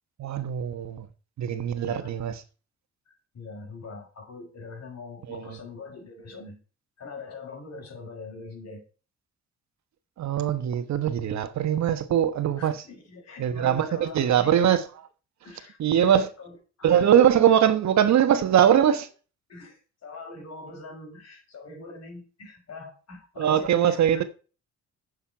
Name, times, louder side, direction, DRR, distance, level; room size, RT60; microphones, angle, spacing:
voice 1, 0.2-1.0 1.4-2.3 5.3-5.5 10.2-12.8 13.4-14.8 15.8-16.3 16.8-19.1 23.4-24.2, right 9 dB, 65° right, 1.3 m, -22 dB
voice 2, 1.8-2.2 3.1-6.6 7.0-8.8 12.6-14.6 15.4-17.4 19.5-24.3, left 3 dB, 60° left, 5.7 m, -43 dB
8.9 x 6.7 x 5.6 m
cardioid pair, 90°, 30 cm